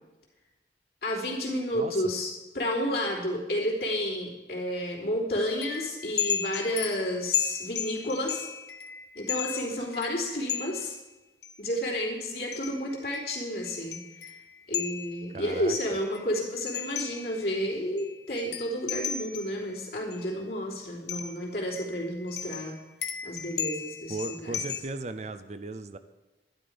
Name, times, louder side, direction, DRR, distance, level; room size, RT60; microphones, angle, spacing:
voice 1, 1.0-8.5 9.1-11.0 11.6-14.0 14.2-14.3 14.7-22.7 23.2-24.6, equal, 60° left, -4 dB, 3.3 m, -31 dB
sound 1, 5.6-10.8 11.4-11.5 12.5-15.2 15.7-17.6 18.0-18.1 18.4-19.6 20.1-20.2 21.1-21.5 21.8-24.8, left 8 dB, 75° left, 1.0 m, -34 dB
voice 2, 15.3-15.7 24.1-26.0, right 3 dB, 40° right, 11 dB, 0.5 m, -36 dB
11.5 x 11.5 x 5.1 m, 1.1 s
head